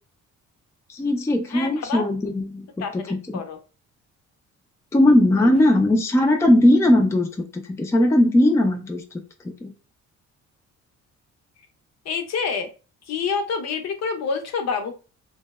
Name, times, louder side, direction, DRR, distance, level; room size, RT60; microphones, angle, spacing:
voice 1, 0.9-3.4 4.9-7.3 7.5-9.0 9.6-9.7, left 1 dB, 10° left, 4 dB, 0.4 m, -19 dB
voice 2, 1.5-2.0 2.8-2.9 3.3-3.6 12.1-12.7 13.1-15.0, left 5 dB, 60° left, 6 dB, 0.6 m, -27 dB
2.7 x 2.0 x 2.2 m, 0.34 s
cardioid pair, 90°, 30 cm